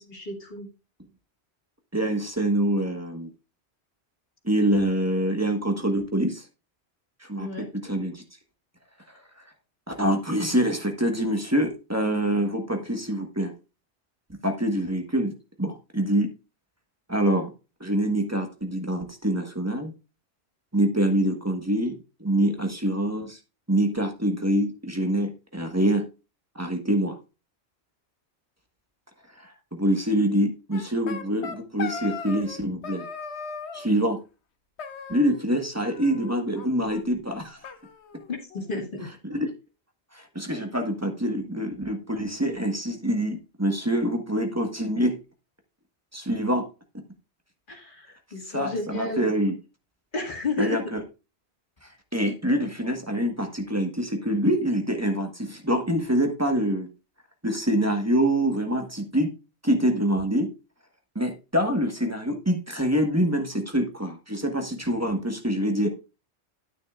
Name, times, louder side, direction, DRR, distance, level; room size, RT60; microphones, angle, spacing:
voice 1, 0.1-0.7 7.4-7.7 38.3-39.1 47.7-49.3 50.1-50.8 65.8-65.9, left 3 dB, 50° left, 0 dB, 2.2 m, -32 dB
voice 2, 1.9-3.3 4.4-6.4 7.2-8.2 9.9-13.5 14.4-15.3 15.6-16.3 17.1-17.5 17.8-19.9 20.7-21.9 22.2-23.4 23.7-26.0 26.5-27.2 29.4-33.1 33.7-34.2 35.1-37.6 39.2-39.5 40.1-45.2 46.1-46.7 48.5-49.6 50.6-51.0 51.8-56.9 57.4-59.3 59.6-60.5 61.1-65.9, right 1 dB, 15° right, 5 dB, 1.3 m, -25 dB
sound 1, 30.7-32.6 32.8-33.9 34.8-35.6 35.8-36.7 36.9-37.0 37.3-37.4 37.6-38.7, left 5 dB, 75° left, 1.2 m, -38 dB
9.6 x 9.4 x 2.4 m, 0.29 s
omnidirectional pair, 1.1 m